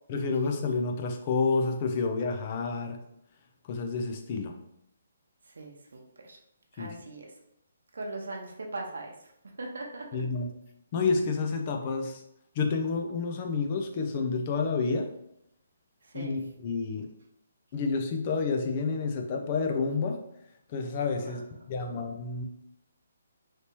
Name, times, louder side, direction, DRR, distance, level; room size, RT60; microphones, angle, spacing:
voice 1, 0.1-3.0 3.7-4.6 6.8-6.9 10.1-10.5 10.9-12.2 12.6-15.1 16.1-17.1 17.7-20.2 20.7-21.4 21.7-22.4, left 4 dB, 25° left, 4 dB, 0.3 m, -29 dB
voice 2, 5.5-6.4 6.7-7.3 7.9-9.3 9.6-10.1 16.0-16.4 21.2-21.4, right 2 dB, 80° right, 1 dB, 0.7 m, -40 dB
3.3 x 2.8 x 2.9 m, 0.77 s
hypercardioid pair, 175°, 0 cm